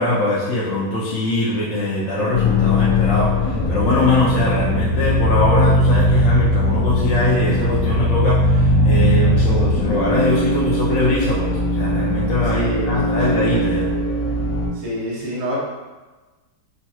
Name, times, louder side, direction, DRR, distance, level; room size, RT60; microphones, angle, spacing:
voice 1, 0.0-13.9, left 2 dB, 60° left, -7 dB, 0.9 m, -22 dB
sound 1, 2.3-14.7, left 1 dB, 85° left, 1.3 m, -19 dB
voice 2, 12.5-13.4 14.7-15.6, right 1 dB, 30° right, -7 dB, 0.8 m, -28 dB
5.2 x 2.8 x 2.3 m, 1.2 s
omnidirectional pair, 1.7 m